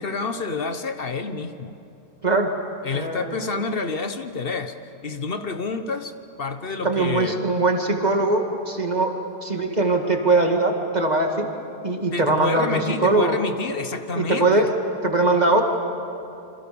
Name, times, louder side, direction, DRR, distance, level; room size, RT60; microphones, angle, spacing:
voice 1, 0.0-1.8 2.8-4.7 5.0-6.1 6.4-7.4 12.1-14.7, left 4 dB, 60° left, 8 dB, 1.3 m, -28 dB
voice 2, 2.9-3.4 6.8-11.5 11.8-13.4 13.9-14.7 15.0-15.6, right 2 dB, 40° right, 3 dB, 2.4 m, -21 dB
28.0 x 26.0 x 7.0 m, 2.8 s
omnidirectional pair, 1.1 m